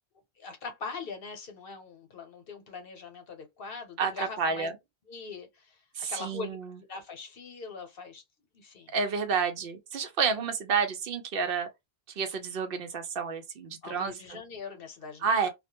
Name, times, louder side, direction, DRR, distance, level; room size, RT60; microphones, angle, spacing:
voice 1, 0.4-4.7 5.1-5.8 6.1-6.6 6.9-8.2 8.5-8.9 13.8-15.5, left 4 dB, 65° left, 0.9 m, -42 dB
voice 2, 4.0-4.7 5.9-6.7 8.9-11.7 12.2-14.4 15.2-15.5, right 5 dB, 70° right, 0.7 m, -30 dB
2.2 x 2.1 x 2.8 m
omnidirectional pair, 1.0 m